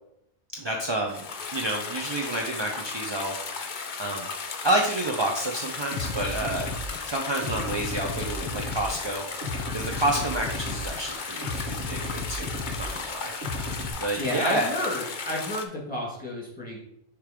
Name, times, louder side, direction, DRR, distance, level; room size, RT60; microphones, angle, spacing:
voice 1, 0.5-1.2 1.5-3.6 4.0-4.3 4.6-6.7 7.0-13.6 14.0-14.7, right 1 dB, 40° right, 1 dB, 0.4 m, -29 dB
sound 1, 1.1-15.7, left 5 dB, 50° left, 0.7 m, -36 dB
sound 2, 5.9-13.9, left 1 dB, 85° right, 1.5 m, -34 dB
voice 2, 14.2-16.8, left 1 dB, 5° left, -4 dB, 2.0 m, -31 dB
6.6 x 3.2 x 5.0 m, 0.78 s
omnidirectional pair, 1.3 m